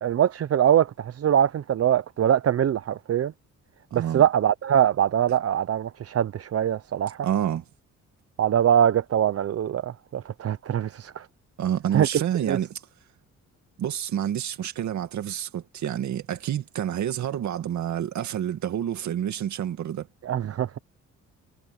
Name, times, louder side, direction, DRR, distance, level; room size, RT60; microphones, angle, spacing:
voice 1, 0.0-3.3 3.9-7.3 8.4-11.3 11.9-12.1 12.5-12.6 20.2-20.8, right 10 dB, 50° right, 0.8 m, -23 dB
voice 2, 3.9-4.2 7.2-7.6 11.6-12.8 13.8-20.1, right 10 dB, 70° right, 2.3 m, -28 dB
cardioid pair, 90°, 30 cm